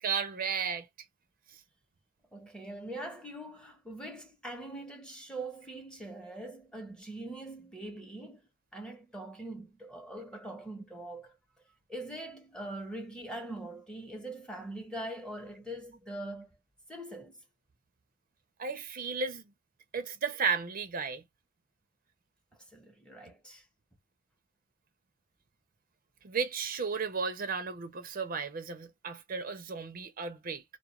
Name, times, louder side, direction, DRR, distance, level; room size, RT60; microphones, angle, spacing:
voice 1, 0.0-0.9 18.6-19.4 19.9-21.2 26.2-30.6, right 5 dB, 45° right, 0.5 m, -34 dB
voice 2, 2.3-8.4 8.7-11.4 11.9-16.5 16.9-17.4 22.7-23.6, right 1 dB, 5° left, 0.7 m, -42 dB
2.3 x 2.2 x 2.9 m
head